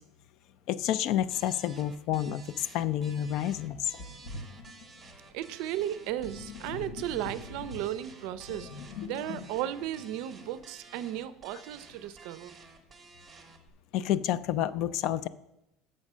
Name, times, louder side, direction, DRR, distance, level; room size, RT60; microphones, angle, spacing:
voice 1, 0.7-3.9 13.9-15.3, left 11 dB, 45° left, 16 dB, 0.3 m, -29 dB
sound 1, 1.3-13.7, right 4 dB, 15° right, 0.9 m, -53 dB
Sink (filling or washing), 3.0-3.1 3.7-11.0, left 4 dB, 65° left, 0.8 m, -45 dB
voice 2, 5.3-12.6, right 12 dB, 55° right, 15 dB, 0.4 m, -35 dB
7.4 x 5.4 x 6.0 m, 0.86 s
cardioid pair, 170°, 0 cm